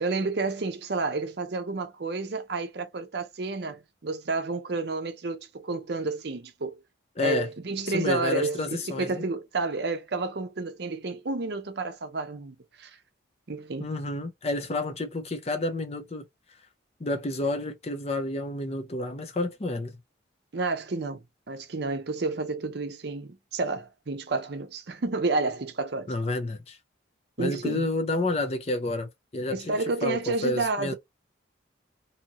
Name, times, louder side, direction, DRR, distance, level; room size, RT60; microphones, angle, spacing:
voice 1, 0.0-6.8 7.2-12.9 13.5-13.9 20.5-26.1 27.4-27.8 29.5-30.9, right 3 dB, 55° right, 0.6 m, -30 dB
voice 2, 7.2-7.5 7.9-9.2 13.8-16.2 17.0-19.9 26.1-26.8 27.4-30.9, left 2 dB, 30° left, 0.5 m, -30 dB
2.8 x 2.6 x 2.8 m
head